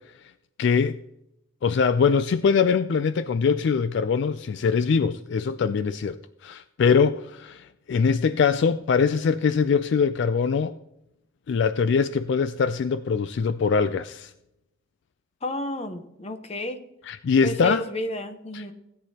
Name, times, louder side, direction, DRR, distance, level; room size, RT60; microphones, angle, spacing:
voice 1, 0.6-1.0 1.6-10.7 11.5-14.3 17.0-17.9 18.5-18.7, left 5 dB, 65° left, 0.3 m, -23 dB
voice 2, 15.4-16.8 17.4-18.7, left 1 dB, 35° left, 0.9 m, -31 dB
16.5 x 9.1 x 2.9 m
head